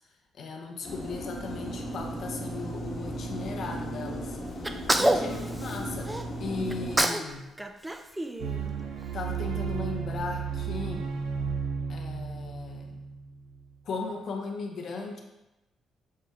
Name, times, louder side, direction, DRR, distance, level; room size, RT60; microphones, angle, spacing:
voice 1, 0.3-6.1 6.4-7.5 9.1-11.2 11.9-13.0 13.8-15.2, left 4 dB, 60° left, 2 dB, 0.6 m, -37 dB
sound 1, 0.8-7.0, right 1 dB, 45° left, 1.0 m, -36 dB
Sneeze, 4.6-6.2 6.7-7.3 7.6-9.0, right 1 dB, 10° right, 0.3 m, -28 dB
sound 2, 8.4-13.7, right 6 dB, 80° right, 0.4 m, -33 dB
6.4 x 2.2 x 3.2 m, 0.97 s
cardioid pair, 90°, 0 cm